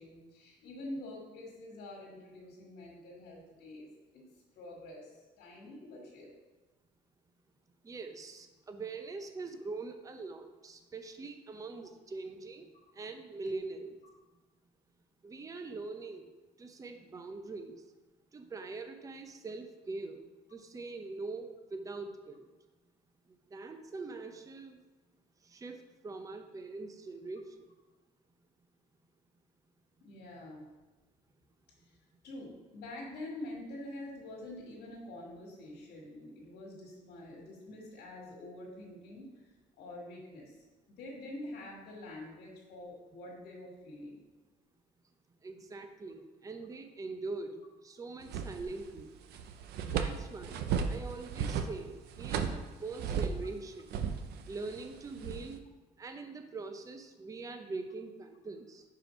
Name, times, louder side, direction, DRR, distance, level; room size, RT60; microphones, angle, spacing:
voice 1, 0.0-4.2 4.5-6.3 30.0-30.6 31.8-32.0 32.2-40.6 41.0-44.2, left 1 dB, 70° left, -3 dB, 1.8 m, -46 dB
voice 2, 7.8-14.0 15.2-16.3 16.6-17.8 18.3-22.4 23.5-24.8 25.4-27.5 45.4-49.1 49.9-50.6 50.9-54.0 54.5-55.6 56.0-58.8, right 3 dB, 20° right, 7 dB, 0.6 m, -43 dB
sound 1, 48.2-49.0 49.3-53.5 53.9-55.6, right 7 dB, 75° right, 0.5 m, -35 dB
5.0 x 4.7 x 5.1 m, 1.2 s
cardioid pair, 110°, 17 cm